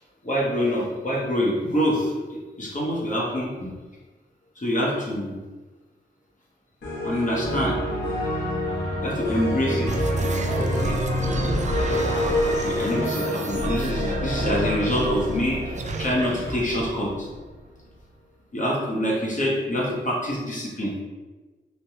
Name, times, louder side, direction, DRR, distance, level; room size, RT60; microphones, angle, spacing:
voice 1, 0.2-3.7 4.6-5.4 7.0-7.8 9.0-9.9 10.4-11.0 12.4-17.3 18.5-20.9, equal, 40° left, -5 dB, 0.9 m, -26 dB
sound 1, 6.8-16.9, left 1 dB, 60° left, 1.2 m, -27 dB
sound 2, 9.8-18.1, right 3 dB, 40° right, 0.4 m, -32 dB
3.2 x 2.2 x 2.8 m, 1.3 s
cardioid pair, 50°, 20 cm